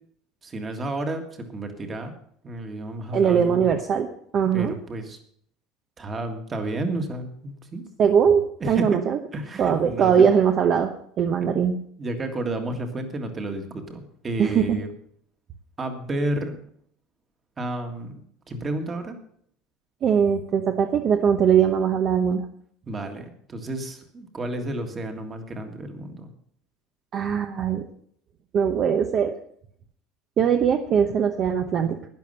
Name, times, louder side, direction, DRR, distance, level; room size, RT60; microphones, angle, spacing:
voice 1, 0.4-2.1 2.4-3.8 4.5-5.2 6.0-7.8 8.6-9.0 9.3-10.3 11.4-11.6 12.0-14.9 15.8-16.6 17.6-18.1 18.5-19.2 22.9-26.3, right 2 dB, 20° right, 6 dB, 1.8 m, -31 dB
voice 2, 3.1-4.8 8.0-9.2 9.6-10.9 11.2-11.8 14.4-14.8 20.0-22.4 27.1-27.8 28.5-29.3 30.4-32.0, right 7 dB, 35° right, 6 dB, 0.9 m, -21 dB
12.0 x 10.5 x 5.6 m, 0.64 s
cardioid pair, 160°, 0 cm